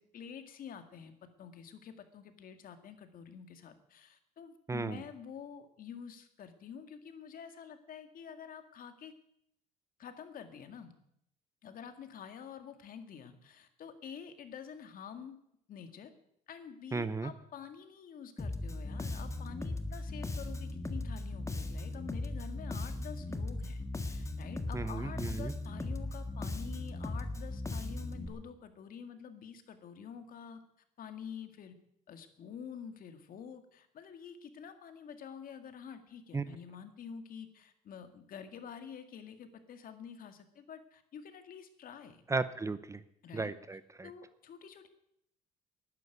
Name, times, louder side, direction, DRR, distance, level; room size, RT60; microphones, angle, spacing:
voice 1, 0.0-9.1 10.0-10.9 11.6-15.4 15.7-16.1 16.5-30.6 31.0-31.7 32.1-42.2 43.2-43.5 44.0-44.9, left 7 dB, 55° left, 8 dB, 2.1 m, -48 dB
voice 2, 4.7-5.0 16.9-17.3 24.7-25.5 36.3-36.4 42.3-43.0 43.3-44.1, right 3 dB, 15° right, 14 dB, 0.7 m, -35 dB
Bass guitar, 18.4-28.3, left 2 dB, 15° left, 1.6 m, -38 dB
11.5 x 11.0 x 9.5 m, 0.75 s
cardioid pair, 110°, 17 cm